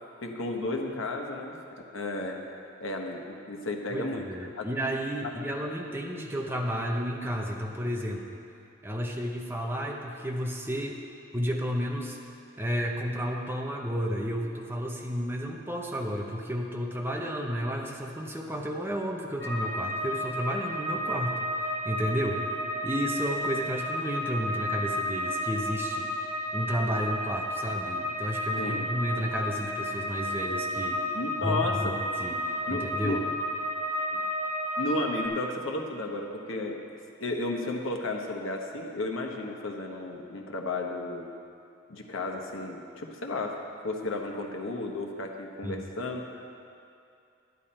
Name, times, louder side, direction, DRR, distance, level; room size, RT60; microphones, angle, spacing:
voice 1, 0.2-1.6 1.9-2.4 2.8-4.3 4.6-4.7 28.6-28.9 31.1-31.9 32.7-33.2 34.1-34.2 34.8-36.8 37.2-41.3 41.9-43.6 43.8-46.5, left 2 dB, 85° left, 2 dB, 1.2 m, -33 dB
voice 2, 3.9-8.2 8.8-11.0 11.3-12.2 12.6-21.5 21.8-22.6 22.8-26.1 26.5-31.0 31.4-33.2 45.6-45.9, equal, 10° right, 0 dB, 0.9 m, -32 dB
sound 1, 19.4-35.3, equal, 50° left, 1.9 m, -32 dB
11.0 x 10.5 x 4.4 m, 2.6 s
head